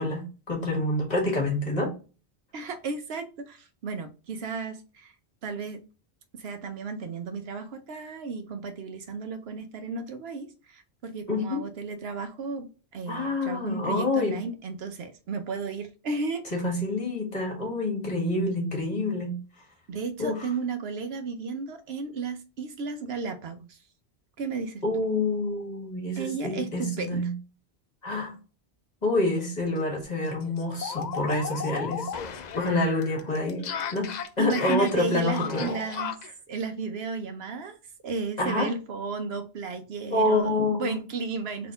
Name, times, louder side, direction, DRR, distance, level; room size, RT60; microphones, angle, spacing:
voice 1, 0.0-1.9 11.3-11.6 13.1-14.4 16.5-19.3 20.2-20.4 24.8-27.3 28.0-28.3 29.0-32.1 32.6-33.6 33.9-35.7 38.4-38.7 40.1-40.9, left 2 dB, 40° left, 1.6 m, -27 dB
voice 2, 2.5-5.1 5.4-5.8 6.3-16.6 19.9-23.8 24.4-24.8 26.2-27.3 34.4-36.1 36.5-37.8 38.0-40.5 40.8-41.7, right 4 dB, 70° right, 0.8 m, -34 dB
sound 1, 29.3-29.5 29.8-29.9 30.2-36.3, left 6 dB, 55° left, 0.5 m, -35 dB
4.0 x 2.9 x 3.8 m
omnidirectional pair, 1.1 m